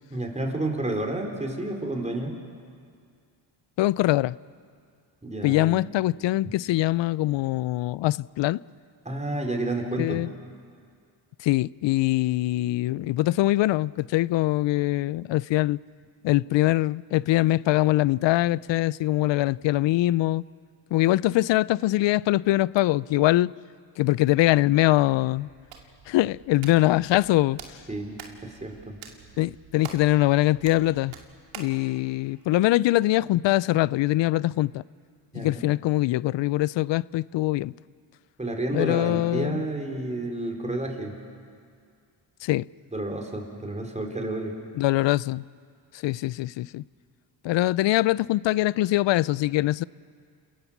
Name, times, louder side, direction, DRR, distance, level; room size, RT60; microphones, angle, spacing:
voice 1, 0.1-2.4 5.2-5.8 6.4-6.5 9.0-10.3 27.9-28.2 28.4-29.0 35.3-35.6 38.4-41.1 42.9-44.5, right 2 dB, 15° right, 4.2 m, -30 dB
voice 2, 3.8-4.4 5.4-8.6 10.0-10.3 11.4-15.8 16.2-20.4 20.9-23.5 24.0-25.5 26.1-27.6 29.4-31.1 31.6-34.8 35.3-37.7 38.7-39.6 42.4-42.7 44.7-45.4 46.0-46.8 47.4-49.8, left 16 dB, 65° left, 0.5 m, -23 dB
Hands, 25.3-31.8, right 6 dB, 80° right, 2.5 m, -46 dB
28.5 x 18.0 x 7.3 m
cardioid pair, 75°, 48 cm